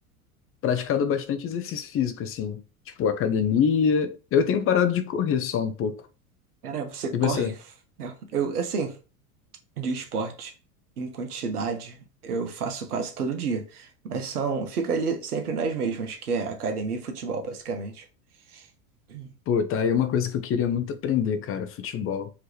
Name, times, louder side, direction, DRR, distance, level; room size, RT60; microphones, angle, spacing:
voice 1, 0.6-2.6 3.0-6.0 7.1-7.5 19.5-22.3, left 7 dB, 30° left, 0.6 m, -25 dB
voice 2, 6.6-7.5 8.0-9.0 9.8-10.5 11.0-18.0 18.5-18.7 19.1-19.3, right 5 dB, 85° right, 1.2 m, -30 dB
4.8 x 3.0 x 3.2 m
hypercardioid pair, 95°, 44 cm